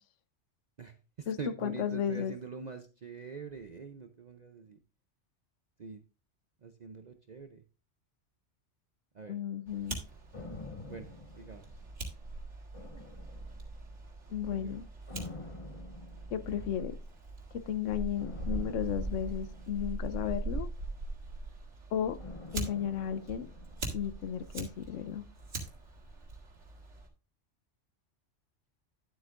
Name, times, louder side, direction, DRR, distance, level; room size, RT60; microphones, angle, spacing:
voice 1, 0.8-4.8 5.8-6.0 6.6-7.6 9.1-9.4 10.9-11.1 11.4-11.8 14.4-14.8, right 4 dB, 45° right, 0.7 m, -44 dB
voice 2, 1.6-2.3 9.3-10.0 14.3-14.9 16.3-16.9 17.5-20.7 21.9-22.2 22.5-23.5 23.9-25.2, left 9 dB, 80° left, 1.1 m, -34 dB
Fire, 9.7-27.1, right 2 dB, 70° right, 2.3 m, -42 dB
sound 1, 10.3-12.2 12.7-14.0 15.1-16.8 18.2-20.6 22.2-24.4 24.6-24.7, left 3 dB, 30° left, 0.9 m, -48 dB
11.5 x 7.9 x 2.5 m
omnidirectional pair, 1.2 m